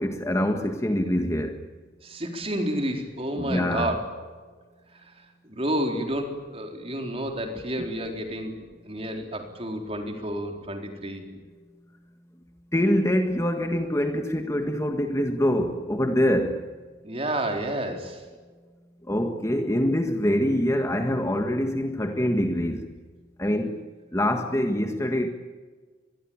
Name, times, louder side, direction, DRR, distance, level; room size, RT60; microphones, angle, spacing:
voice 1, 0.0-1.6 3.4-3.9 12.7-16.6 19.1-22.9 23.4-23.7 24.1-25.3, equal, 15° left, 5 dB, 1.7 m, -24 dB
voice 2, 2.0-4.0 4.9-11.3 17.0-18.3, right 1 dB, 30° right, 4 dB, 4.2 m, -30 dB
25.5 x 21.5 x 8.9 m, 1.4 s
head